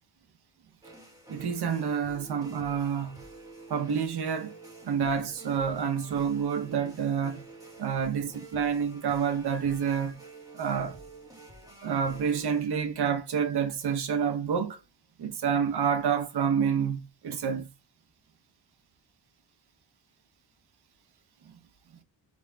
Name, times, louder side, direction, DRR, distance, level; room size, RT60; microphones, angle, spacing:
sound 1, 0.8-12.6, right 2 dB, 10° right, 2.1 m, -49 dB
voice 1, 1.3-3.2 3.7-4.5 4.8-7.4 7.8-10.2 10.5-11.0 11.8-14.8 15.2-17.7 21.5-21.6, right 7 dB, 65° right, 0.9 m, -28 dB
4.1 x 3.5 x 2.3 m
cardioid pair, 80°, 42 cm